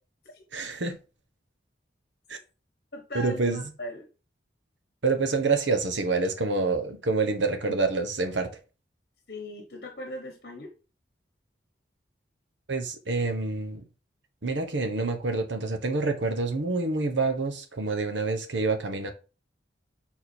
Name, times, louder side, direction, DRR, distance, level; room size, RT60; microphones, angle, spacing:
voice 1, 0.5-1.0 2.3-2.4 3.1-3.7 5.0-8.5 12.7-13.8 14.4-19.1, right 3 dB, 80° right, 1.2 m, -27 dB
voice 2, 2.9-4.1 9.3-10.7, left 1 dB, 55° left, 1.1 m, -39 dB
6.8 x 3.9 x 4.4 m
head